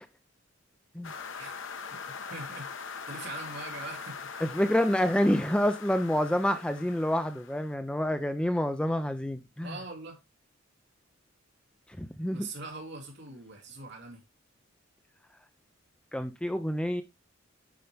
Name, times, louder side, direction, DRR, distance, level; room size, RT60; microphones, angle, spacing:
sound 1, 1.0-7.7, left 5 dB, 65° left, 1.0 m, -42 dB
voice 1, 2.2-4.3 9.6-10.2 12.3-14.2, right 3 dB, 55° right, 2.8 m, -42 dB
voice 2, 4.4-9.8 12.0-12.5 16.1-17.0, equal, 5° left, 0.5 m, -28 dB
8.8 x 5.3 x 3.4 m
head